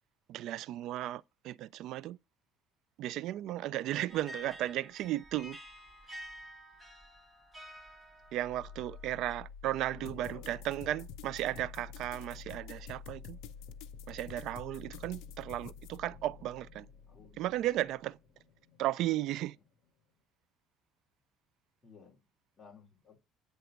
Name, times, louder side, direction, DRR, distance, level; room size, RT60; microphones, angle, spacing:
voice 1, 0.3-2.2 3.0-5.6 8.3-13.4 14.1-16.9 17.4-18.2 18.8-19.6, right 14 dB, 60° right, 0.3 m, -35 dB
sound 1, 4.1-9.3, equal, 10° right, 1.6 m, -50 dB
sound 2, 8.2-20.1, left 5 dB, 55° left, 1.7 m, -50 dB
voice 2, 9.9-10.5 16.2-16.5 17.1-17.5 21.8-22.2 22.6-23.2, left 4 dB, 15° left, 3.0 m, -55 dB
sound 3, 10.0-16.0, left 11 dB, 80° left, 0.5 m, -51 dB
9.0 x 3.4 x 5.1 m
cardioid pair, 145°, 0 cm